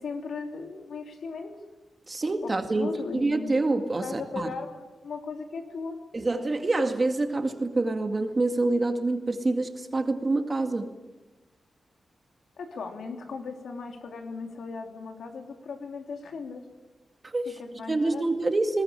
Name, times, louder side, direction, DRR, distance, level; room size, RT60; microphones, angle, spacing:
voice 1, 0.0-1.5 2.4-3.5 4.0-6.0 12.6-16.6 17.4-18.2, left 4 dB, 85° left, 4 dB, 3.2 m, -37 dB
voice 2, 2.1-4.5 6.1-10.9 17.2-17.5 17.9-18.8, right 2 dB, 25° right, 6 dB, 2.1 m, -26 dB
21.0 x 19.5 x 9.8 m, 1.2 s
wide cardioid pair, 155°, 0 cm